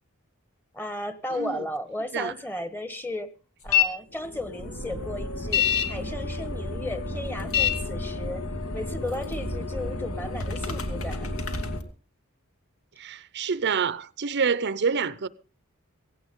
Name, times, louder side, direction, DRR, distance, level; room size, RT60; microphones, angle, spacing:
voice 1, 0.7-3.3 3.6-8.5 8.7-11.3, left 1 dB, 10° left, 1.3 m, -35 dB
sound 1, 3.7-3.9 4.3-11.8, left 6 dB, 70° left, 2.2 m, -29 dB
voice 2, 13.0-15.3, right 5 dB, 55° right, 0.6 m, -27 dB
17.0 x 16.5 x 3.7 m
head